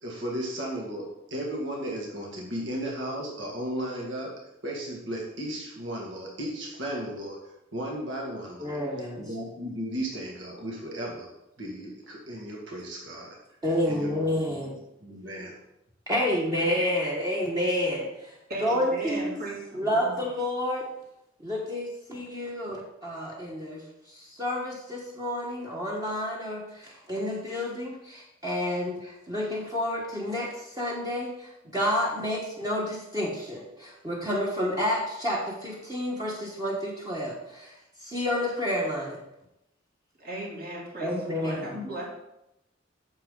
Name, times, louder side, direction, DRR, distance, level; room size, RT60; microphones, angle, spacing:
voice 1, 0.0-4.3 4.6-7.4 7.7-8.8 9.2-11.3 11.6-13.4 13.9-14.6 15.0-15.6, right 1 dB, 75° right, -2 dB, 2.1 m, -35 dB
voice 2, 8.6-9.2 13.6-14.8 16.1-18.0 18.6-19.4 19.7-20.9 21.4-23.8 24.1-30.5 30.8-37.7 38.0-39.2 41.0-41.8, left 1 dB, 20° right, -4 dB, 1.3 m, -29 dB
voice 3, 18.5-20.2 40.2-42.1, right 1 dB, 50° right, -4 dB, 3.0 m, -37 dB
8.9 x 7.1 x 3.8 m, 0.87 s
head